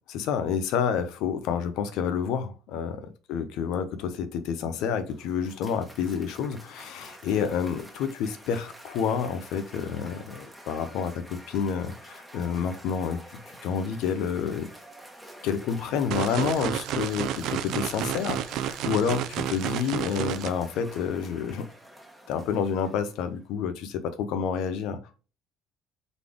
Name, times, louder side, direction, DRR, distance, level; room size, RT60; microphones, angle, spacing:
voice 1, 0.1-13.2 13.6-14.7 15.4-21.7 22.3-25.0, left 7 dB, 75° left, 0.7 m, -29 dB
Cheering / Applause, 4.8-23.4, equal, 5° right, 1.2 m, -48 dB
sound 1, 16.1-20.5, right 11 dB, 70° right, 0.4 m, -30 dB
4.0 x 3.4 x 3.5 m
supercardioid pair, 90°, 0 cm